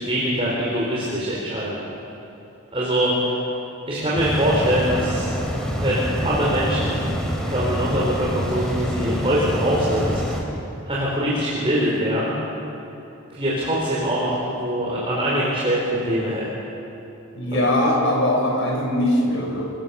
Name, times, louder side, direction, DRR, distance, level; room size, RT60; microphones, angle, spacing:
voice 1, 0.0-1.8 2.7-3.3 3.9-5.3 5.8-7.1 7.5-10.2 10.9-12.3 13.3-16.6 17.5-17.6, equal, 25° right, -6 dB, 4.3 m, -23 dB
sound 1, 4.2-10.4, equal, 5° left, 2.9 m, -26 dB
voice 2, 17.3-19.7, left 1 dB, 60° left, -2 dB, 6.6 m, -21 dB
28.5 x 19.5 x 7.2 m, 2.9 s
head